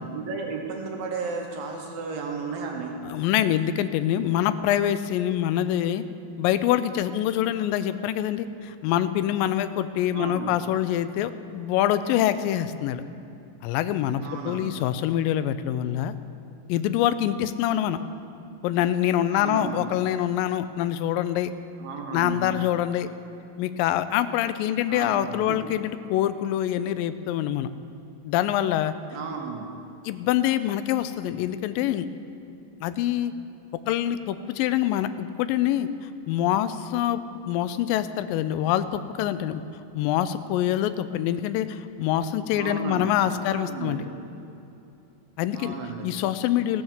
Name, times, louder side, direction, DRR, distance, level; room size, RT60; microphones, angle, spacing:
voice 1, 0.0-3.0 10.1-10.5 14.2-14.8 19.3-19.9 21.8-22.6 24.9-25.4 29.1-29.8 42.6-44.0 45.5-46.1, right 5 dB, 75° right, 1 dB, 2.8 m, -34 dB
voice 2, 3.0-6.0 6.4-13.0 13.6-16.1 16.7-18.0 18.6-21.5 22.1-23.1 23.6-27.7 28.2-28.9 30.0-32.1 32.8-33.3 33.9-37.2 37.5-39.6 39.9-44.0 45.4-45.8 46.0-46.8, left 11 dB, 80° left, 12 dB, 2.1 m, -25 dB
15.5 x 7.8 x 7.2 m, 2.7 s
omnidirectional pair, 4.4 m